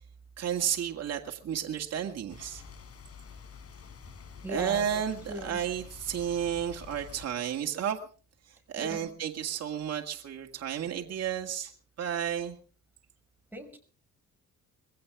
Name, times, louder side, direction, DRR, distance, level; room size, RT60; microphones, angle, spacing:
voice 1, 0.4-2.6 4.5-8.0 8.5-11.7 12.0-12.6, right 9 dB, 55° right, 3 dB, 2.0 m, -32 dB
sound 1, 2.3-7.3, left 6 dB, 50° left, 3.8 m, -48 dB
voice 2, 4.4-5.0 5.3-5.6 8.8-9.1 13.5-13.8, equal, 5° right, 4 dB, 5.8 m, -39 dB
22.0 x 16.5 x 3.7 m, 0.39 s
cardioid pair, 90°, 30 cm